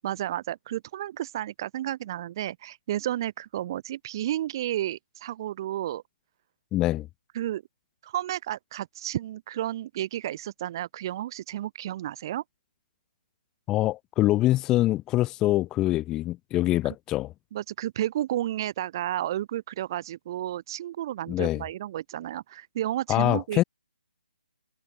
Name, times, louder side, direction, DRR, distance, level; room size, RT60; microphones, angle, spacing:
voice 1, 0.0-6.0 7.3-7.6 8.0-12.4 17.5-23.6, right 12 dB, 25° right, 4.2 m, -32 dB
voice 2, 6.7-7.1 13.7-17.3 21.3-21.6 23.1-23.6, left 16 dB, 10° left, 5.4 m, -24 dB
hypercardioid pair, 170°, 5 cm